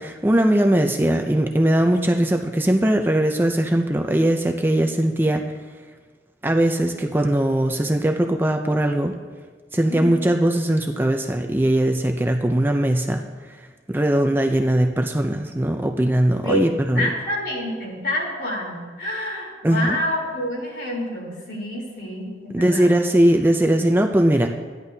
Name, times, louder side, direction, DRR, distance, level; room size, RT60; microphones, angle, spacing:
voice 1, 0.0-5.4 6.4-9.1 9.7-13.2 13.9-17.1 19.6-20.0 22.5-24.5, right 1 dB, 10° right, 4 dB, 0.5 m, -20 dB
voice 2, 9.9-10.3 16.4-16.7 17.0-23.0, left 1 dB, 65° left, -3 dB, 3.7 m, -28 dB
15.0 x 10.5 x 2.8 m, 1.4 s
head